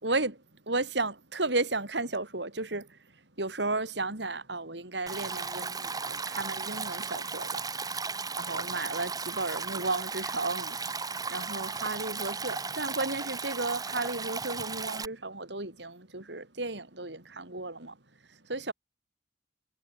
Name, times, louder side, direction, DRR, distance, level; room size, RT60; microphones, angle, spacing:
voice 1, 0.0-3.0 3.4-7.7 8.4-10.8 11.3-18.0 18.5-18.7, right 2 dB, 75° right, 4.7 m, -33 dB
Stream, 5.1-15.1, right 4 dB, 20° right, 2.0 m, -35 dB
head